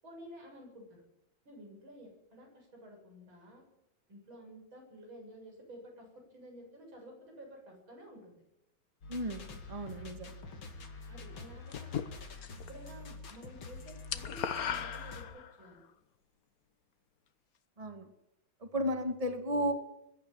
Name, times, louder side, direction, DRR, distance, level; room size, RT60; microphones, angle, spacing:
voice 1, 0.0-1.0 1.4-3.6 4.1-8.4 11.1-12.2 12.7-15.8, equal, 90° right, 1 dB, 8.3 m, -52 dB
sound 1, 9.0-15.2, left 3 dB, 90° left, 3.2 m, -47 dB
voice 2, 9.1-10.3 17.8-18.1 18.6-19.7, equal, 20° right, 6 dB, 2.2 m, -34 dB
sound 2, 11.7-12.7 13.0-13.4 13.6-15.7, left 8 dB, 55° left, 1.4 m, -37 dB
22.5 x 12.0 x 9.4 m, 0.86 s
omnidirectional pair, 2.1 m